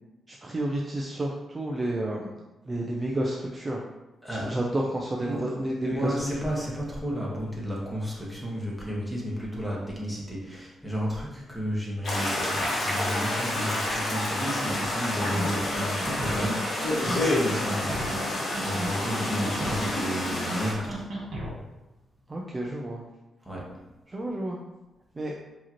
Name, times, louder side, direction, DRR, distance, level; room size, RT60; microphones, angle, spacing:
voice 1, 0.3-2.3 2.7-3.8 4.3-6.1 22.3-23.0 24.1-24.6 25.2-25.3, right 1 dB, 25° right, -2 dB, 0.5 m, -30 dB
voice 2, 4.2-4.6 5.2-21.1 23.4-23.8, equal, ahead, -5 dB, 1.2 m, -32 dB
sound 1, 12.0-20.7, left 1 dB, 60° left, 1.2 m, -29 dB
sound 2, 14.7-14.8 15.1-15.4 15.7-16.5 16.8-17.1 17.5-18.2 18.5-18.9 19.2-19.9 20.2-20.6 20.9-21.5, right 1 dB, 70° right, 1.1 m, -34 dB
4.8 x 3.0 x 2.9 m, 1.0 s
cardioid pair, 115°, 0 cm